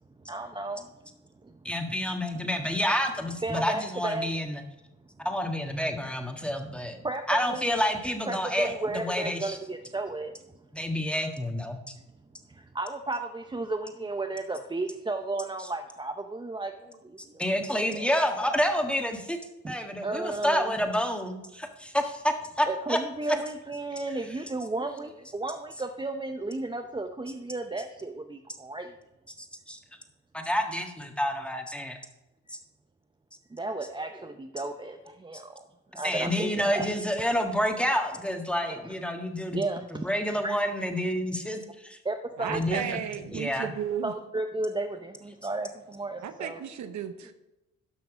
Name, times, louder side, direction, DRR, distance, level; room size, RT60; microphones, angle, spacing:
voice 1, 0.2-0.9 1.4-1.7 3.4-4.3 6.4-6.5 7.0-7.7 8.3-10.3 12.5-16.7 17.0-17.4 17.8-18.6 19.6-19.8 20.0-20.8 22.6-29.0 33.5-35.6 35.9-36.9 38.7-38.8 39.5-40.5 42.0-42.6 44.0-46.6, right 2 dB, 15° right, 5 dB, 0.7 m, -34 dB
voice 2, 1.6-4.6 5.2-7.0 7.3-9.6 10.7-11.9 17.4-19.4 19.7-23.0 29.7-29.8 30.3-32.0 32.5-32.6 35.9-42.0 42.5-43.0 43.3-43.7, equal, 5° left, 4 dB, 1.5 m, -29 dB
voice 3, 42.4-44.1 46.2-47.3, right 9 dB, 70° right, 9 dB, 0.9 m, -34 dB
12.0 x 5.9 x 5.0 m, 0.96 s
cardioid pair, 90°, 30 cm